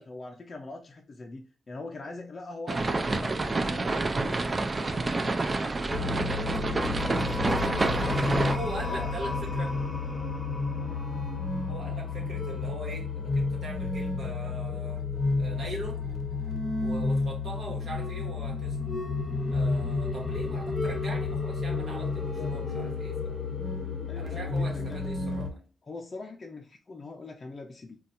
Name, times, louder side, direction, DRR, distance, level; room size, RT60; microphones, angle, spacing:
voice 1, 0.0-7.4 7.9-8.6 8.9-9.1 10.8-11.1 22.1-22.9 24.1-25.0 25.8-28.0, left 2 dB, 40° left, 0.4 m, -43 dB
sound 1, 2.7-8.6, right 3 dB, 35° right, 0.3 m, -28 dB
sound 2, 5.9-25.5, left 3 dB, 25° left, 0.8 m, -31 dB
voice 2, 8.4-9.8 11.7-15.1 15.4-16.0 16.8-18.8 19.5-23.4 24.1-25.6, right 1 dB, 65° right, 1.2 m, -40 dB
3.9 x 2.3 x 2.5 m
cardioid pair, 90°, 0 cm